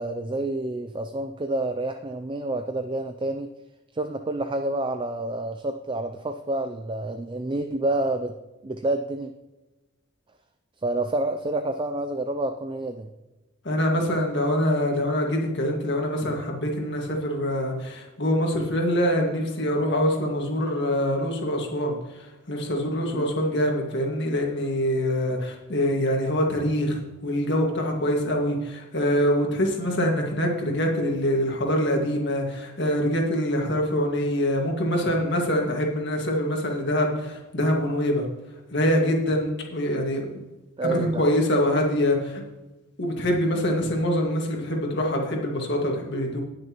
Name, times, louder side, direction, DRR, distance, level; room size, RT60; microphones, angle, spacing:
voice 1, 0.0-3.5 3.9-8.4 8.6-9.3 10.8-13.1 23.1-23.3 40.8-41.2, right 2 dB, 25° right, 8 dB, 0.3 m, -28 dB
voice 2, 13.6-38.3 38.7-40.3 40.8-42.4 43.0-46.4, equal, 55° left, 1 dB, 1.9 m, -24 dB
19.0 x 6.4 x 3.0 m, 1.1 s
head